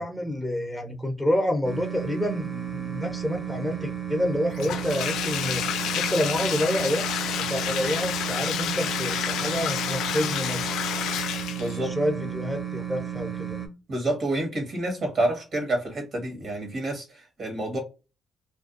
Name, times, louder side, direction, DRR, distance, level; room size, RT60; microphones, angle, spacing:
voice 1, 0.0-5.6 5.9-7.0 7.5-10.7 11.7-13.6, equal, 5° left, 0.6 m, -28 dB
sound 1, 1.6-13.7, right 9 dB, 25° right, 0.8 m, -34 dB
Bathtub (filling or washing), 4.6-11.8, left 9 dB, 85° left, 0.3 m, -29 dB
voice 2, 11.6-11.9 13.9-17.8, right 1 dB, 55° right, 1.3 m, -28 dB
2.5 x 2.3 x 2.4 m
cardioid pair, 90°, 0 cm